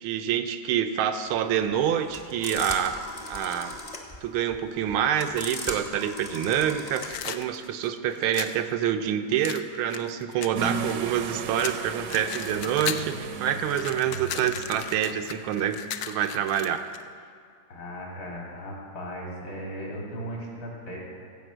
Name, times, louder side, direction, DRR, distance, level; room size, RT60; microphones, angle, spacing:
voice 1, 0.0-3.0 3.3-3.8 4.2-15.8 16.1-16.8, right 9 dB, 85° right, 8 dB, 1.5 m, -27 dB
sound 1, 1.3-7.3, left 2 dB, 30° left, 0.8 m, -39 dB
sound 2, 6.9-8.6 9.4-11.2 11.6-13.2 13.5-17.0, left 10 dB, 85° left, 0.8 m, -36 dB
sound 3, 10.5-16.0, right 5 dB, 70° right, 1.2 m, -35 dB
voice 2, 17.7-21.0, equal, 65° left, -2 dB, 3.1 m, -37 dB
15.0 x 5.3 x 7.9 m, 2.3 s
omnidirectional pair, 2.2 m